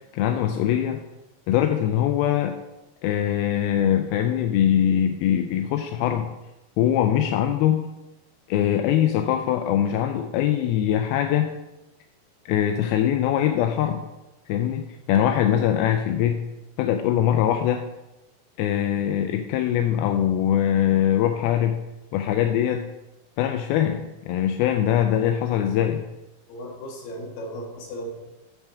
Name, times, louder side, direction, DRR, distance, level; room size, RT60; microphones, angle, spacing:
voice 1, 0.1-1.0 1.5-2.6 3.0-6.3 6.8-7.8 8.5-11.5 12.5-14.0 14.5-14.8 15.1-16.4 16.8-17.8 18.6-21.8 22.1-22.8 23.4-26.0, left 10 dB, 85° left, 5 dB, 2.3 m, -22 dB
voice 2, 26.5-28.1, equal, 65° left, -1 dB, 3.1 m, -36 dB
8.8 x 4.6 x 5.8 m, 0.99 s
omnidirectional pair, 4.6 m